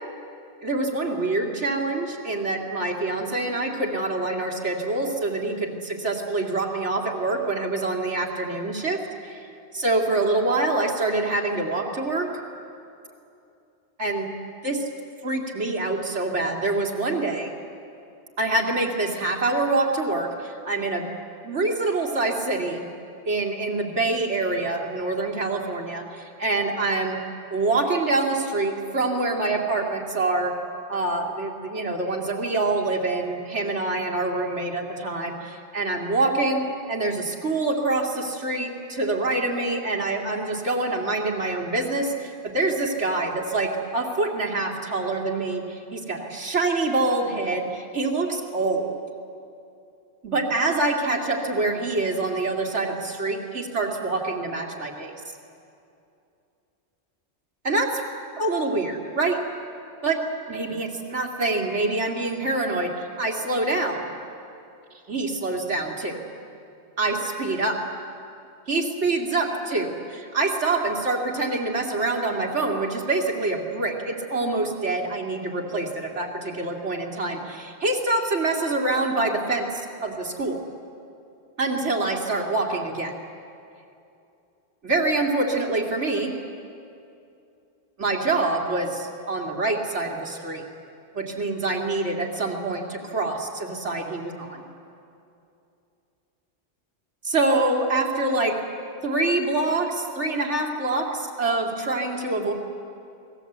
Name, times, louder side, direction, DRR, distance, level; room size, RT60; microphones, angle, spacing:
voice 1, 0.6-9.4 9.7-12.3 14.0-14.3 14.6-14.8 15.2-17.5 18.4-21.1 21.4-22.8 23.3-27.2 27.5-30.5 30.9-49.0 50.2-55.1 57.6-58.0 58.4-59.4 60.0-60.2 60.5-64.1 65.1-66.2 67.0-67.8 68.7-80.6 81.6-83.1 84.8-86.4 88.0-90.6 91.1-94.6 97.2-98.6 99.0-102.5, right 2 dB, 80° right, 0 dB, 3.0 m, -25 dB
28.5 x 20.5 x 8.1 m, 2.6 s
omnidirectional pair, 1.2 m